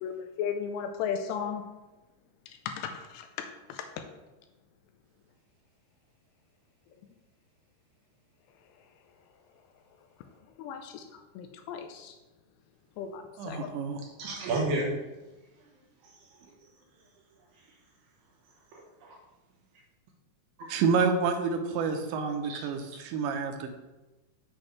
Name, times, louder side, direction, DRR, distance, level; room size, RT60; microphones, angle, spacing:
voice 1, 0.0-1.6 2.7-4.0 10.6-12.2 13.0-13.7, left 7 dB, 85° left, 6 dB, 2.6 m, -36 dB
voice 2, 13.4-14.0 20.7-23.7, right 5 dB, 90° right, 5 dB, 3.1 m, -28 dB
voice 3, 14.2-15.0 15.6-15.7 16.0-16.6 18.7-18.8 19.1-19.2 20.6-20.7 22.5-22.6, right 2 dB, 70° right, -2 dB, 2.3 m, -32 dB
8.0 x 6.2 x 3.2 m, 1.1 s
omnidirectional pair, 5.1 m